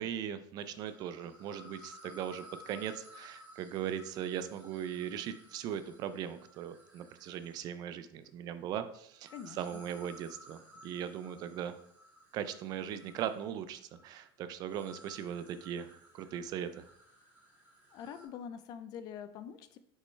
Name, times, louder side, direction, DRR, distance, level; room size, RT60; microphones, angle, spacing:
voice 1, 0.0-11.8 12.3-16.8, right 9 dB, 35° right, 11 dB, 0.3 m, -39 dB
sound 1, 0.6-7.7 9.1-18.2, equal, 15° right, 1.8 m, -57 dB
voice 2, 9.3-9.8 17.9-19.8, left 8 dB, 35° left, 11 dB, 0.4 m, -45 dB
6.4 x 5.3 x 3.2 m, 0.68 s
cardioid pair, 175°, 12 cm